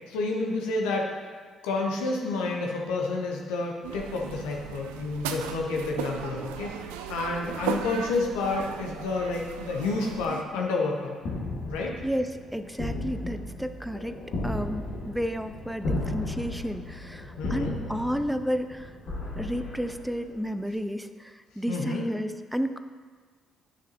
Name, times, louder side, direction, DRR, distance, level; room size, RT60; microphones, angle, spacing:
voice 1, 0.1-1.1 1.6-11.2 11.7-11.9 17.4-17.7 21.7-22.1, left 3 dB, 75° left, 0 dB, 0.9 m, -29 dB
sound 1, 3.8-10.4, right 7 dB, 75° right, 0.3 m, -36 dB
sound 2, 11.2-20.5, left 2 dB, 60° left, 1.7 m, -35 dB
voice 2, 12.0-14.2 14.4-19.0 19.4-22.8, equal, ahead, 9 dB, 0.4 m, -32 dB
9.6 x 6.2 x 2.8 m, 1.5 s
hypercardioid pair, 45°, 0 cm